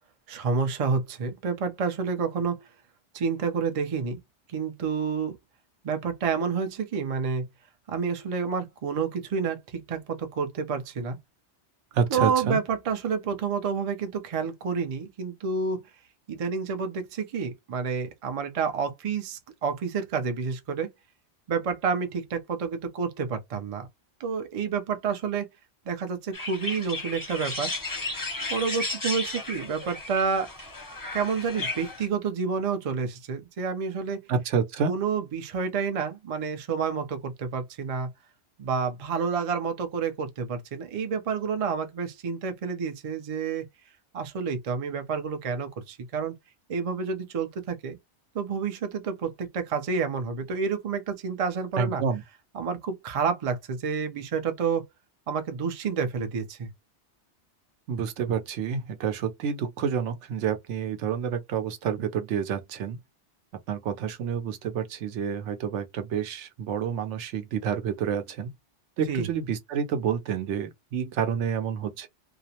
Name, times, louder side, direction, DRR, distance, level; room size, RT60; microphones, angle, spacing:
voice 1, 0.3-2.6 3.1-4.2 4.5-5.4 5.8-7.5 7.9-11.2 12.1-15.9 16.3-20.9 21.5-23.9 24.2-25.5 25.9-27.7 28.5-30.5 31.1-34.2 34.9-38.1 38.6-43.7 44.1-46.3 46.7-48.0 48.3-52.0 52.5-54.8 55.3-56.7 69.1-69.3, right 5 dB, 50° right, 0.4 m, -29 dB
voice 2, 11.9-12.6 34.3-34.9 51.8-52.2 57.9-63.0 63.7-68.5 69.0-72.1, right 7 dB, 80° right, 0.9 m, -29 dB
sound 1, 26.3-32.1, left 2 dB, 25° left, 0.6 m, -34 dB
2.4 x 2.0 x 2.7 m
omnidirectional pair, 1.2 m